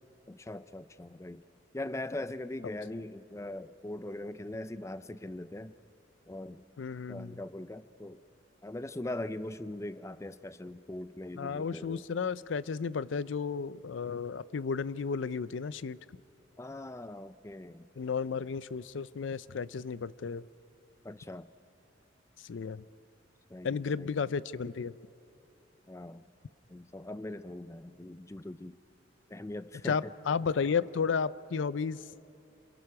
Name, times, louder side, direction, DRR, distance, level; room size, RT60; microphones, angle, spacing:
voice 1, 0.3-1.4 1.7-5.7 6.3-6.6 7.1-8.2 8.6-12.0 16.6-17.9 21.0-21.5 23.5-24.1 25.9-26.3 26.7-28.8 29.3-30.1, left 1 dB, 15° left, 13 dB, 0.4 m, -41 dB
voice 2, 6.8-7.4 11.4-16.0 18.0-20.5 22.4-22.8 23.6-25.0 29.8-32.0, left 5 dB, 85° left, 17 dB, 0.5 m, -33 dB
27.0 x 27.0 x 5.9 m, 2.8 s
head